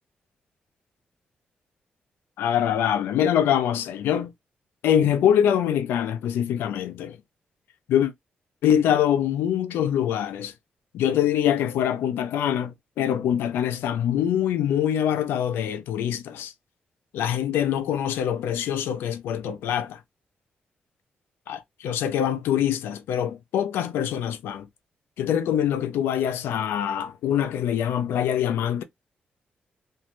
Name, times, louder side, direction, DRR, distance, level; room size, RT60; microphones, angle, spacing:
voice 1, 2.4-4.3 4.8-7.2 7.9-8.1 8.6-10.5 10.9-16.5 17.1-20.0 21.5-24.7 25.2-28.8, left 10 dB, 90° left, 0.4 m, -24 dB
2.6 x 2.1 x 2.9 m
supercardioid pair, 60°, 4 cm